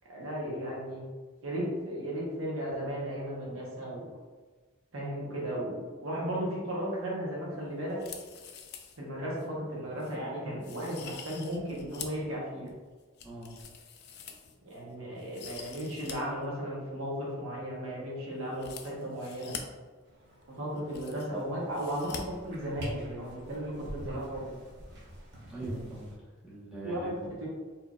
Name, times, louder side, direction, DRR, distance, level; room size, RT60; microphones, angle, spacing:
voice 1, 0.1-1.0 1.4-4.1 4.9-8.0 9.0-12.7 14.7-19.6 20.5-24.6 26.8-27.1 27.4-27.5, equal, 75° right, -5 dB, 1.1 m, -35 dB
sound 1, 7.9-9.0 9.4-9.5 10.0-10.2 10.6-12.3 12.7-14.8 15.2-16.1 16.4-16.5 18.5-19.6 20.4-20.5 20.7-21.4 21.7-22.2 22.5-22.6, left 7 dB, 55° left, 0.4 m, -45 dB
sound 2, 20.0-26.1, equal, 60° right, 0.9 m, -45 dB
voice 2, 25.5-27.4, right 1 dB, 5° right, -9 dB, 1.2 m, -42 dB
4.4 x 2.9 x 2.4 m, 1.4 s
head